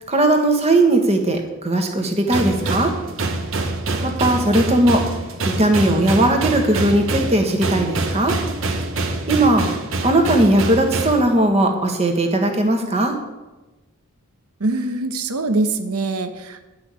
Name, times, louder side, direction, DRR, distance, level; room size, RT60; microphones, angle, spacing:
voice 1, 0.1-2.9 4.0-5.1 5.5-8.4 9.3-9.7 10.0-13.1, right 1 dB, 30° right, 4 dB, 1.3 m, -18 dB
sound 1, 2.3-11.2, right 2 dB, 60° right, 1.1 m, -25 dB
voice 2, 14.6-16.6, right 2 dB, 85° right, 8 dB, 0.9 m, -23 dB
9.9 x 5.7 x 8.1 m, 1.1 s
head